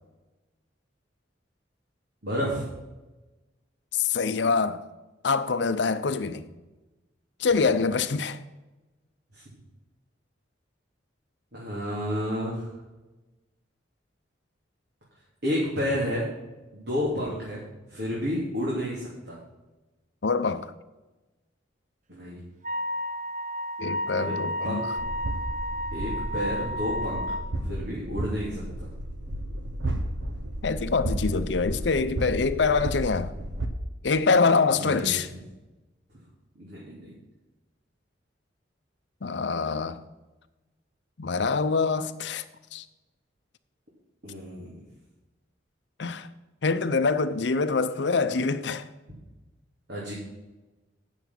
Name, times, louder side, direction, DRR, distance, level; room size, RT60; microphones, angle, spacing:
voice 1, 2.2-2.6 6.1-6.4 9.3-9.4 11.5-12.7 15.4-16.2 16.7-17.6 17.9-19.4 22.1-22.4 24.1-24.4 24.6-24.8 25.9-27.3 27.6-28.9 34.8-35.2 36.6-37.1 44.2-44.7 49.1-49.2 49.9-50.1, equal, 60° right, 2.9 m, -31 dB
voice 2, 3.9-4.8 5.2-6.4 7.4-8.4 20.2-20.7 23.8-24.8 30.6-33.3 34.0-35.3 39.2-40.0 41.2-42.4 42.7-42.8 46.0-46.3 46.6-48.8, left 4 dB, 65° left, 0.6 m, -25 dB
Wind instrument woodwind instrument, 22.6-27.5, equal, 40° right, 0.8 m, -32 dB
sound 1, 25.0-33.7, right 1 dB, 80° right, 1.1 m, -33 dB
9.3 x 6.9 x 6.0 m
head